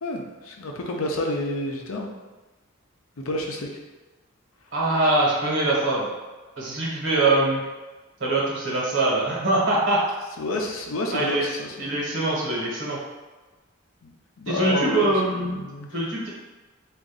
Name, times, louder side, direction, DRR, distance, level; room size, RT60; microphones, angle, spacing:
voice 1, 0.0-2.1 3.2-3.8 10.4-11.7 14.0-14.1 14.4-15.9, left 1 dB, 85° left, 1 dB, 0.6 m, -29 dB
voice 2, 4.7-6.1 6.6-7.6 8.2-10.0 11.1-11.4 11.8-13.0 14.5-15.6 15.9-16.3, right 2 dB, 60° right, -4 dB, 1.2 m, -23 dB
3.6 x 2.6 x 3.9 m, 1.2 s
head